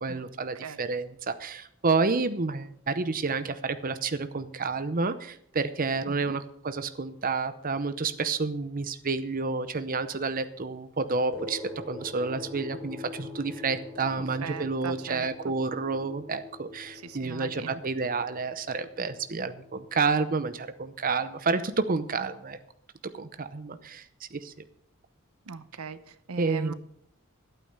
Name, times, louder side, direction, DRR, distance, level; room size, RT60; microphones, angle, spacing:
voice 1, 0.0-11.6 11.9-22.6 23.1-24.0 24.3-24.5 26.4-26.7, right 4 dB, 40° right, 11 dB, 0.7 m, -30 dB
sound 1, 11.3-20.1, left 2 dB, ahead, 3.6 m, -44 dB
voice 2, 14.4-15.5 16.9-17.8 25.5-26.7, right 6 dB, 85° right, 13 dB, 0.8 m, -40 dB
12.0 x 8.9 x 6.6 m, 0.69 s
head